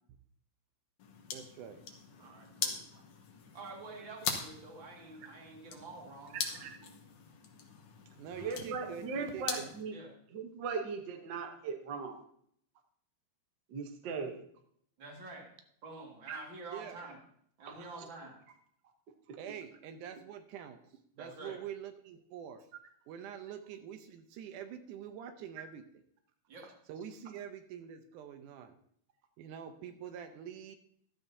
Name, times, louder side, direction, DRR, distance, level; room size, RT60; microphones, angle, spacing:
sound 1, 1.0-9.8, left 6 dB, 70° left, 2.4 m, -42 dB
voice 1, 1.3-1.8 8.2-9.7 16.7-17.0 19.4-20.8 21.2-22.7 23.1-25.8 26.9-28.7 29.4-30.8, right 8 dB, 80° right, 8 dB, 2.2 m, -45 dB
voice 2, 2.2-2.8 3.5-6.8 9.9-10.1 15.0-15.5 15.8-17.2 17.6-18.4 21.2-21.6 26.5-26.7, right 3 dB, 40° right, 0 dB, 2.6 m, -48 dB
voice 3, 8.4-9.9 10.3-12.2 13.7-14.4 16.3-16.4 19.3-19.4, right 5 dB, 65° right, 4 dB, 1.1 m, -38 dB
14.0 x 12.0 x 2.8 m, 0.66 s
omnidirectional pair, 3.6 m